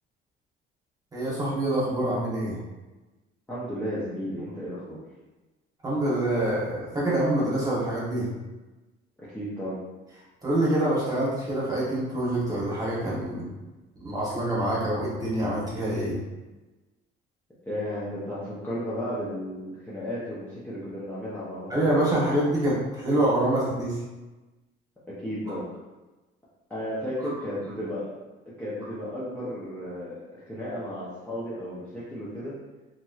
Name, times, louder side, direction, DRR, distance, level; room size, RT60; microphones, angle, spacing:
voice 1, 1.1-2.6 5.8-8.3 10.4-13.4 14.0-16.2 21.7-24.0, right 1 dB, 15° right, -7 dB, 1.1 m, -26 dB
voice 2, 3.5-5.0 9.2-9.8 17.6-21.8 25.1-25.7 26.7-28.1 28.6-32.6, equal, 10° left, -10 dB, 0.6 m, -34 dB
2.9 x 2.9 x 2.3 m, 1.1 s
cardioid pair, 145°, 21 cm